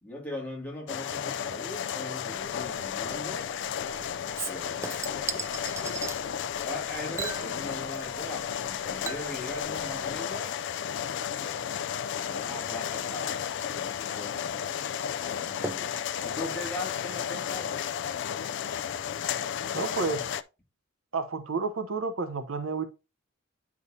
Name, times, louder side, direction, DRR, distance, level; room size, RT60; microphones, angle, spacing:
voice 1, 0.0-3.5 4.5-6.1 6.6-10.6 11.4-11.6 12.2-15.7 16.2-17.7, left 1 dB, 10° left, 2.2 m, -40 dB
sound 1, 0.9-20.4, left 8 dB, 60° left, 0.3 m, -33 dB
sound 2, 2.3-10.1, left 1 dB, 25° left, 1.1 m, -51 dB
Chink clink / Liquid, 4.4-6.2 7.2-8.3 8.6-17.6 17.9-18.0, right 4 dB, 15° right, 0.4 m, -41 dB
voice 2, 19.7-20.3 21.1-22.9, right 4 dB, 80° right, 0.8 m, -30 dB
9.6 x 4.8 x 2.7 m
head